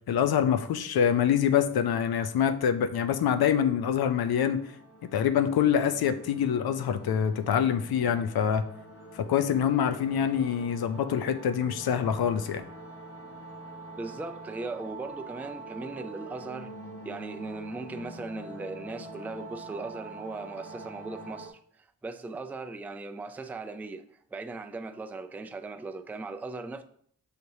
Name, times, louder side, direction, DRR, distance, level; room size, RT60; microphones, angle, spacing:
voice 1, 0.1-4.6 5.1-8.6 9.2-12.6, left 8 dB, 85° left, 0.5 m, -25 dB
sound 1, 3.5-21.5, right 2 dB, 35° left, 1.0 m, -45 dB
voice 2, 14.0-16.7 17.0-24.0 24.3-26.8, right 3 dB, 5° right, 0.3 m, -38 dB
6.5 x 3.0 x 2.7 m
cardioid pair, 50°, 36 cm